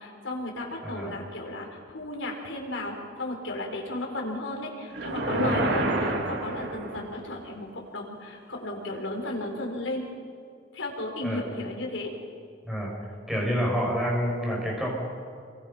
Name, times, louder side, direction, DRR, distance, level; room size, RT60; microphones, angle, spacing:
voice 1, 0.0-10.1 10.7-12.1, left 1 dB, 80° left, 1 dB, 4.8 m, -34 dB
voice 2, 0.8-1.2 5.4-6.1 11.2-11.4 12.6-12.9 13.3-14.9, equal, ahead, -3 dB, 6.6 m, -29 dB
sound 1, 4.9-7.3, right 2 dB, 60° right, 2.2 m, -28 dB
29.0 x 23.0 x 5.8 m, 2.3 s
head